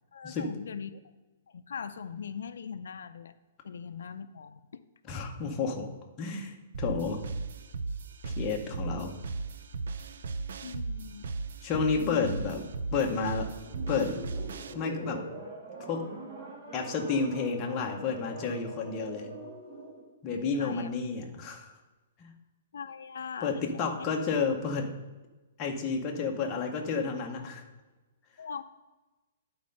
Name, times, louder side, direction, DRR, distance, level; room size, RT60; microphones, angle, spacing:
voice 1, 0.1-1.0 1.5-3.3 3.6-4.6 10.6-11.3 12.0-12.3 20.6-20.9 22.7-23.9 28.4-28.6, left 6 dB, 85° left, 11 dB, 0.4 m, -40 dB
voice 2, 5.1-5.9 6.2-7.2 8.2-9.1 11.6-12.6 12.9-13.5 13.9-14.2 14.7-15.2 15.9-16.1 16.7-19.3 20.2-21.7 22.2-22.3 23.4-24.9 25.6-27.6, left 5 dB, 15° left, 1 dB, 0.8 m, -31 dB
sound 1, 6.7-14.7, right 4 dB, 65° right, 0.5 m, -37 dB
sound 2, 13.6-20.1, right 2 dB, 35° right, 1.7 m, -43 dB
9.6 x 4.2 x 5.3 m, 1.2 s
hypercardioid pair, 175°, 0 cm